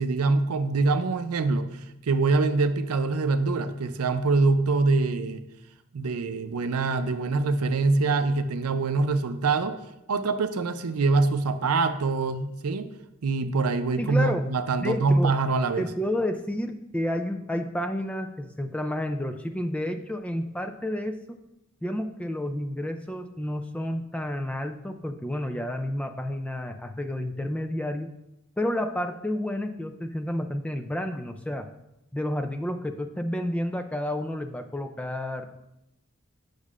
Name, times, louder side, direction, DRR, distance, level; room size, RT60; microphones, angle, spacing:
voice 1, 0.0-1.7 2.0-5.4 5.9-9.8 10.1-12.9 13.2-15.8, right 3 dB, 90° right, 9 dB, 0.5 m, -24 dB
voice 2, 14.0-14.5 14.8-15.3 15.8-21.4 21.8-28.1 28.6-31.7 32.1-35.6, left 1 dB, 5° left, 6 dB, 0.3 m, -30 dB
8.3 x 6.3 x 2.4 m, 0.87 s
head